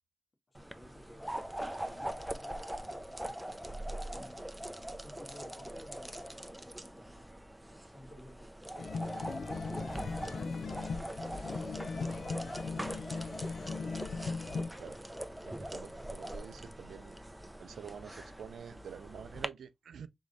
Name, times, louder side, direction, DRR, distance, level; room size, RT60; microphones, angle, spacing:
voice 1, 0.5-1.2 1.8-2.7 3.0-3.5 3.9-4.4 4.9-9.1 9.7-10.8 11.2-13.4, left 1 dB, 45° left, 1.8 m, -55 dB
sound 1, 0.5-19.5, right 1 dB, 10° right, 0.6 m, -42 dB
sound 2, 8.8-14.7, left 4 dB, 80° left, 0.5 m, -38 dB
voice 2, 15.4-17.2 17.6-20.1, right 8 dB, 85° right, 0.4 m, -48 dB
3.6 x 3.1 x 4.0 m
cardioid pair, 50°, 0 cm